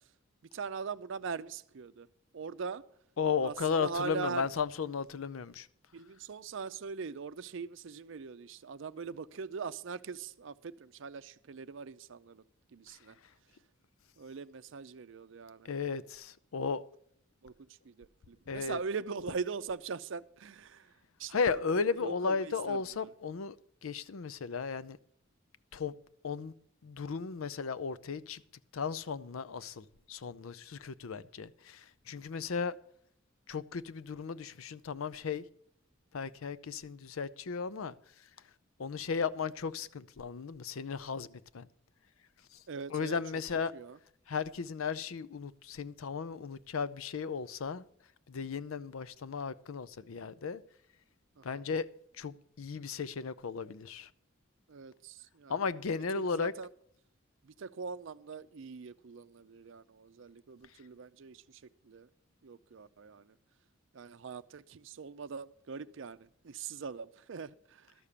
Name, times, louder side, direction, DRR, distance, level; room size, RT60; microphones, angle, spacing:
voice 1, 0.5-2.1 2.3-2.8 3.4-4.5 5.9-12.4 12.7-13.2 14.2-15.7 17.4-23.1 42.7-43.2 43.7-44.0 51.4-51.6 54.7-56.7 57.4-62.1 62.4-63.3 63.9-67.9, right 5 dB, 65° right, 0.5 m, -42 dB
voice 2, 3.2-5.7 15.7-16.8 18.5-18.8 21.3-23.6 23.8-25.0 25.7-25.9 26.2-26.5 26.8-28.4 28.7-31.8 32.1-32.8 33.5-35.4 36.1-37.9 38.8-41.6 42.9-43.7 44.3-47.8 48.3-50.6 51.4-51.9 52.2-54.1 55.5-56.5, left 5 dB, 85° left, 0.5 m, -35 dB
12.5 x 6.7 x 7.1 m
head